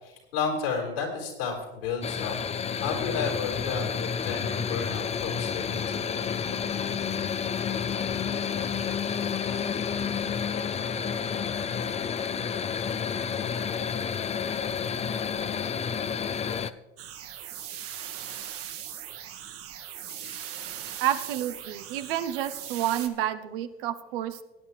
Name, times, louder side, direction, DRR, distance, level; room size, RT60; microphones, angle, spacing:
voice 1, 0.0-2.4 2.8-6.5 20.2-20.4, left 5 dB, 75° left, 0 dB, 4.6 m, -32 dB
sound 1, 2.0-16.7, left 7 dB, 20° left, 0.5 m, -30 dB
sound 2, 17.0-23.1, right 10 dB, 50° right, 1.4 m, -39 dB
voice 2, 21.0-24.4, right 11 dB, 70° right, 10 dB, 1.0 m, -29 dB
18.0 x 9.8 x 3.2 m, 1.1 s
hypercardioid pair, 80°, 29 cm